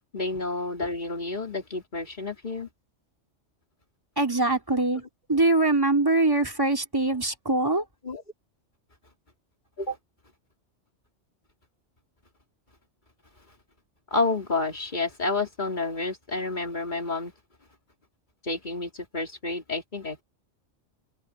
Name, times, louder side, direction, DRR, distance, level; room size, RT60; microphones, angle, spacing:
voice 1, 0.1-2.7 8.0-8.2 9.8-10.0 14.1-17.3 18.4-20.2, left 3 dB, 40° left, 3.1 m, -30 dB
voice 2, 4.2-5.0 5.3-7.8, right 2 dB, 20° right, 3.4 m, -23 dB
omnidirectional pair, 1.2 m